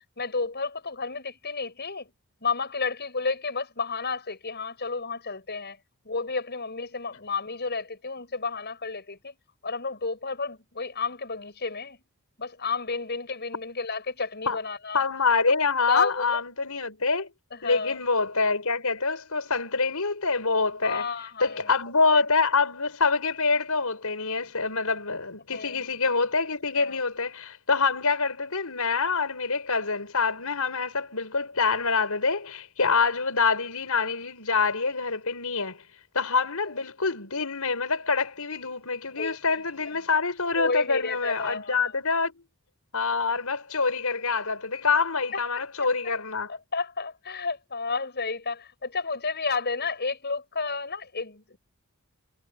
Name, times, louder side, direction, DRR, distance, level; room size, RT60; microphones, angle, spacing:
voice 1, 0.2-2.1 2.4-5.8 6.0-9.4 9.6-12.0 12.4-15.0 15.9-16.4 17.5-18.0 20.8-21.7 22.1-22.2 25.5-25.8 26.8-26.9 39.2-39.6 39.9-40.0 40.5-41.8 45.3-45.4 45.8-45.9 46.5-51.6, left 4 dB, 50° left, 7.4 m, -31 dB
voice 2, 14.9-17.3 17.6-21.1 21.4-35.8 36.1-42.4 42.9-46.5, left 4 dB, 90° left, 4.9 m, -26 dB
head